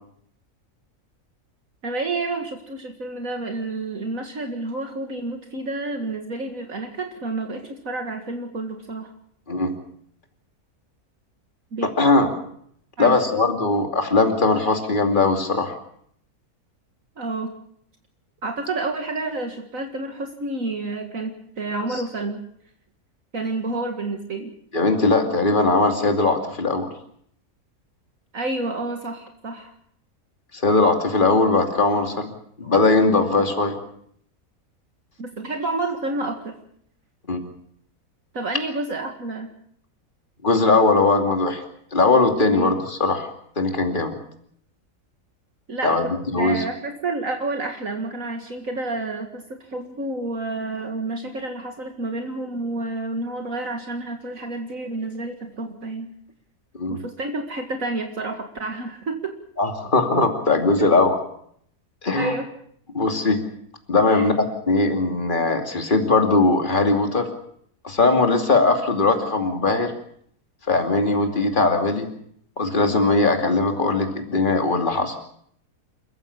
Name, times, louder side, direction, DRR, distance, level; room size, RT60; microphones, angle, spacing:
voice 1, 1.8-9.1 11.7-11.9 13.0-13.2 17.2-17.5 18.4-22.5 23.3-24.5 28.3-29.7 35.2-36.5 38.3-39.5 42.5-42.8 45.7-56.1 56.9-59.3 62.2-62.5 64.1-64.3, right 2 dB, 60° right, 4 dB, 2.3 m, -29 dB
voice 2, 11.8-12.3 13.0-15.7 24.7-26.9 30.6-32.3 32.6-33.8 37.3-37.5 40.4-41.6 41.9-43.3 43.6-44.2 45.8-46.6 56.8-57.0 59.6-61.2 62.0-62.3 62.9-63.4 63.9-64.3 64.7-67.3 67.8-69.9 70.7-72.1 72.6-75.2, left 3 dB, 35° left, 4 dB, 2.8 m, -20 dB
29.0 x 15.0 x 7.1 m, 0.68 s
omnidirectional pair, 1.6 m